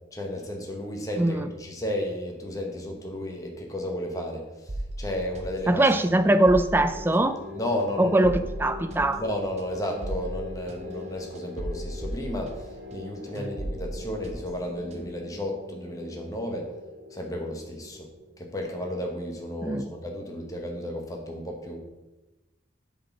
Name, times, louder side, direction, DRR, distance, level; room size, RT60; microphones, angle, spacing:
voice 1, 0.1-5.8 7.5-8.3 9.2-16.7 17.1-18.1 18.4-21.8, left 1 dB, 20° left, 1 dB, 1.0 m, -33 dB
voice 2, 1.2-1.5 5.7-7.4 8.0-9.2 13.4-13.5 19.6-19.8, right 1 dB, 10° right, 10 dB, 0.3 m, -22 dB
sound 1, 4.7-13.1 13.3-15.3, right 1 dB, 35° right, 0.8 m, -37 dB
sound 2, 6.9-18.7, left 3 dB, 75° right, 1.4 m, -43 dB
7.4 x 4.1 x 6.0 m, 1.1 s
head